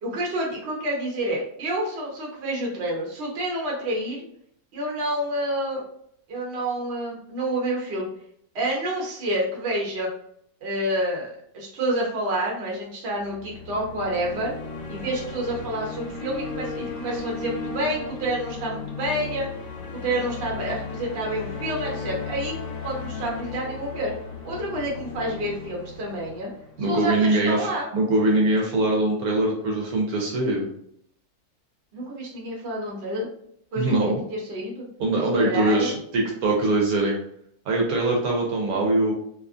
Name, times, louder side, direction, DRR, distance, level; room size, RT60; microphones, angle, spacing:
voice 1, 0.0-4.2 4.7-5.8 6.3-8.1 8.5-10.1 10.6-14.5 14.9-19.5 19.9-22.6 22.8-24.1 24.4-26.5 26.8-27.9 31.9-33.3 33.7-34.9 35.4-35.9, right 1 dB, 50° right, -2 dB, 1.0 m, -28 dB
sound 1, 13.1-27.3, left 4 dB, 65° left, 1.1 m, -36 dB
voice 2, 26.8-30.7 33.8-34.2 35.0-37.2 37.6-39.1, right 2 dB, 75° right, -1 dB, 1.1 m, -22 dB
2.8 x 2.3 x 2.4 m, 0.69 s
omnidirectional pair, 1.6 m